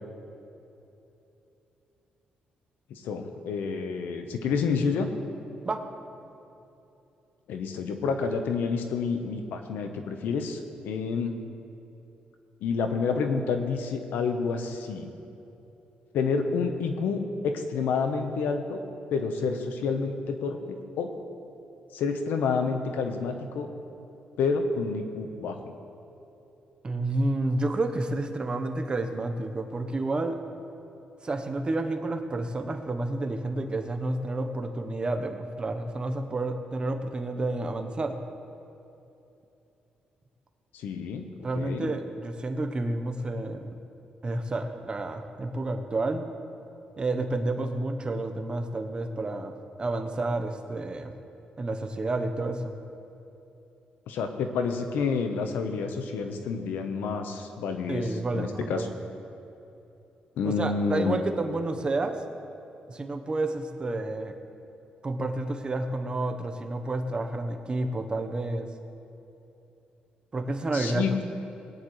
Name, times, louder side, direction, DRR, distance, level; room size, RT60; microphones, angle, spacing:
voice 1, 2.9-5.1 7.5-11.4 12.6-15.1 16.1-18.8 19.1-21.1 21.9-23.7 24.4-25.7 40.7-41.3 41.5-41.9 54.1-58.9 60.4-61.2 70.7-71.1, left 5 dB, 90° left, 6 dB, 1.0 m, -29 dB
voice 2, 26.8-30.4 31.2-38.2 41.4-43.7 44.2-46.3 47.0-49.5 49.8-51.1 51.6-52.8 57.9-58.9 60.4-62.2 62.9-64.3 65.0-68.7 70.3-71.2, right 2 dB, 30° right, 6 dB, 1.0 m, -30 dB
19.5 x 10.0 x 3.2 m, 2.9 s
cardioid pair, 100°, 3 cm